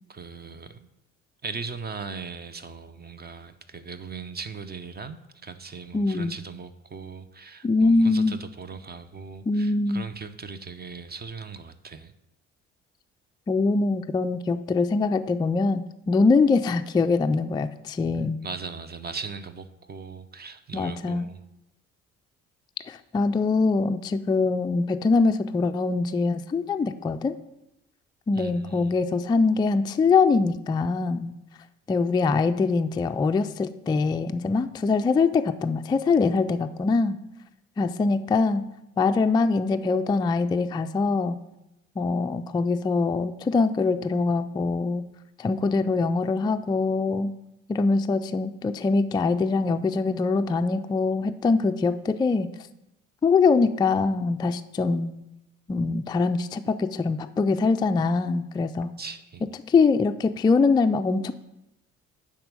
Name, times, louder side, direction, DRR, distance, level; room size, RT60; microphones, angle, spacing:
voice 1, 0.1-0.8 1.4-12.1 18.4-21.4 28.3-29.0 59.0-59.4, right 5 dB, 25° right, 12 dB, 0.6 m, -39 dB
voice 2, 5.9-6.3 7.6-8.3 9.5-10.0 13.5-18.4 20.7-21.3 22.9-27.3 28.3-31.3 31.9-37.2 37.8-38.6 39.0-41.4 42.0-45.0 45.4-47.3 47.7-52.5 53.2-55.1 55.7-58.9 59.7-61.3, left 4 dB, 10° left, 8 dB, 0.3 m, -23 dB
10.0 x 3.6 x 6.6 m, 0.89 s
figure-of-eight pair, 45°, 37 cm